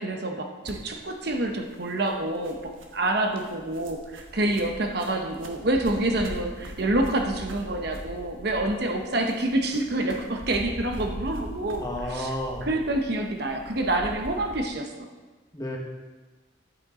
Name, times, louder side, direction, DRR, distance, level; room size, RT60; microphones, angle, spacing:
voice 1, 0.0-2.6 2.9-12.3 12.6-14.9, right 1 dB, 55° right, 3 dB, 1.0 m, -27 dB
sound 1, 0.6-14.7, right 1 dB, 85° right, 1.3 m, -41 dB
voice 2, 11.8-12.7 15.5-15.8, left 1 dB, 20° left, -1 dB, 1.3 m, -31 dB
11.0 x 8.9 x 3.8 m, 1.3 s
head